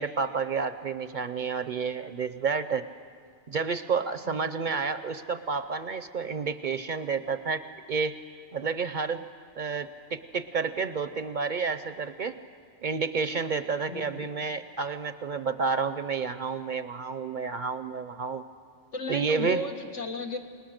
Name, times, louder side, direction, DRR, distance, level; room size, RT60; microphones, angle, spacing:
voice 1, 0.0-2.9 3.5-7.6 7.9-8.2 8.5-9.3 9.6-12.4 12.8-18.4 19.1-19.6, right 5 dB, 50° right, 11 dB, 0.7 m, -30 dB
voice 2, 4.3-4.7 13.9-14.3 18.9-20.4, left 2 dB, 80° left, 4 dB, 1.9 m, -35 dB
29.0 x 19.0 x 6.5 m, 2.1 s
omnidirectional pair, 1.2 m